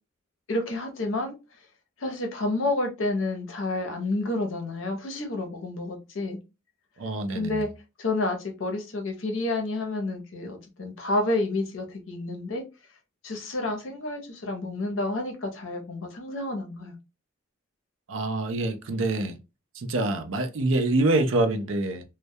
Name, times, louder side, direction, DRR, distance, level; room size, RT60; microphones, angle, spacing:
voice 1, 0.5-1.4 2.0-6.4 7.3-7.7 8.0-12.6 13.2-16.9, left 2 dB, 70° left, 0.7 m, -29 dB
voice 2, 7.0-7.6 18.1-19.3 19.9-22.0, right 2 dB, 70° right, 0.5 m, -25 dB
2.2 x 2.1 x 2.6 m
head